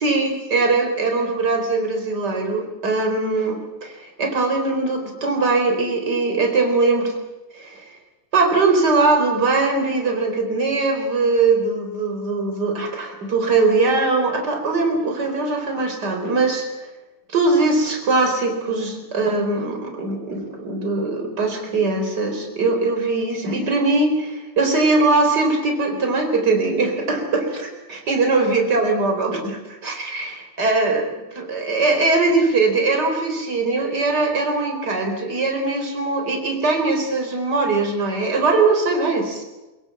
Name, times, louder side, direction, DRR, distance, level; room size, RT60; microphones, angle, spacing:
voice 1, 0.0-7.1 7.5-7.8 8.3-16.7 17.3-31.1 31.3-39.4, right 3 dB, 35° right, 3 dB, 4.7 m, -21 dB
24.0 x 22.0 x 7.7 m, 1.1 s
omnidirectional pair, 3.3 m